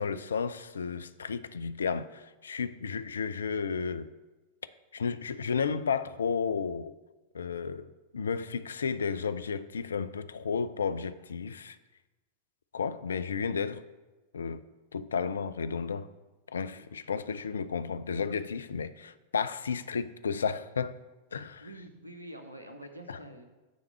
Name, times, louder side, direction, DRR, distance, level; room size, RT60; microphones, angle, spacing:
voice 1, 0.0-4.1 4.9-6.9 7.3-11.8 12.7-13.8 14.3-14.6 14.9-16.1 16.5-21.0 21.3-21.7 23.1-23.2, left 6 dB, 70° left, 0.3 m, -33 dB
voice 2, 16.7-17.0 21.6-23.4, right 1 dB, 85° right, 0.9 m, -47 dB
9.1 x 3.5 x 6.8 m
figure-of-eight pair, 90°, 0 cm